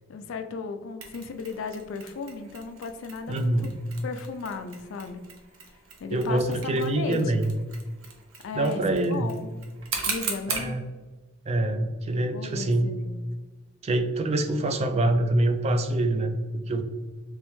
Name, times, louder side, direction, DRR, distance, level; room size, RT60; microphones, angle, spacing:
voice 1, 0.1-3.7 4.0-5.2 6.0-7.2 8.4-9.5 10.1-10.8 12.3-13.2, left 5 dB, 70° left, 8 dB, 0.4 m, -35 dB
Mechanisms, 1.0-10.7, right 4 dB, 90° right, 0.7 m, -39 dB
voice 2, 3.3-3.8 6.1-7.6 8.5-9.3 10.5-10.8 11.5-12.9 13.8-16.8, right 1 dB, 30° right, 7 dB, 0.3 m, -25 dB
3.3 x 3.2 x 3.1 m, 1.3 s
head